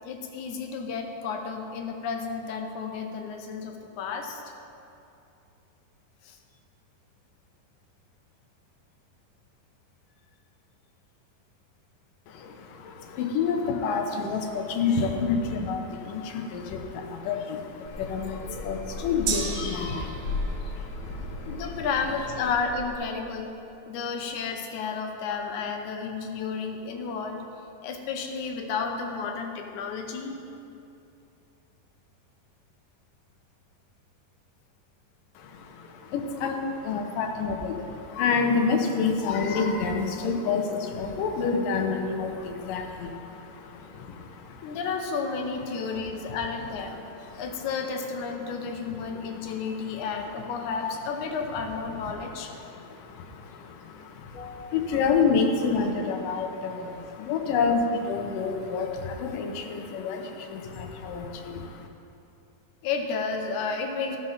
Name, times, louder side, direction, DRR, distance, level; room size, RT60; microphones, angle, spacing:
voice 1, 0.0-4.4 6.2-6.4 21.5-23.6 23.9-27.4 27.8-30.4 44.6-47.0 47.4-52.5 54.3-54.7 62.8-64.2, left 5 dB, 75° left, 3 dB, 2.2 m, -32 dB
voice 2, 12.3-21.9 35.4-44.8 45.9-46.4 46.9-47.6 48.4-50.0 52.1-61.9, left 5 dB, 90° left, 3 dB, 2.5 m, -29 dB
sound 1, 17.8-22.9, left 3 dB, 35° left, 2.3 m, -36 dB
Gong, 19.3-27.0 27.4-27.5, right 6 dB, 85° right, 2.5 m, -40 dB
15.0 x 5.2 x 5.6 m, 2.7 s
omnidirectional pair, 3.7 m